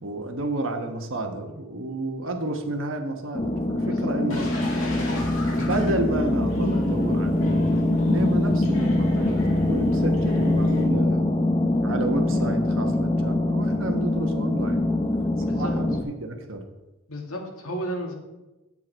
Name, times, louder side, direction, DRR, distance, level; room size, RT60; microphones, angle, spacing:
voice 1, 0.0-4.5 5.6-9.4 9.7-11.2 11.8-14.8 15.5-16.6, right 1 dB, 65° right, 5 dB, 1.2 m, -30 dB
sound 1, 3.3-16.0, left 1 dB, 25° left, 0.7 m, -23 dB
voice 2, 3.8-4.1 5.0-5.2 15.4-15.7 17.1-18.1, right 1 dB, 85° left, 1 dB, 1.9 m, -34 dB
sound 2, 4.3-10.8, left 1 dB, 65° left, 2.2 m, -33 dB
8.5 x 8.5 x 4.4 m, 1.0 s
head